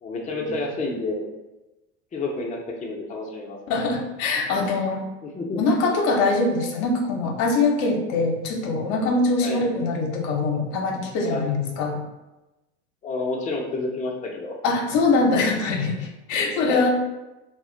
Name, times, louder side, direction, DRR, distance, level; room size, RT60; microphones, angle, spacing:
voice 1, 0.0-1.3 2.1-3.6 5.2-5.6 9.4-9.6 11.2-11.4 13.0-14.6 16.7-16.9, left 3 dB, 20° left, -1 dB, 0.6 m, -29 dB
voice 2, 3.7-5.0 5.6-12.0 14.6-16.9, left 3 dB, 65° left, 1 dB, 0.7 m, -23 dB
2.4 x 2.1 x 3.7 m, 1.0 s
hypercardioid pair, 85°, 34 cm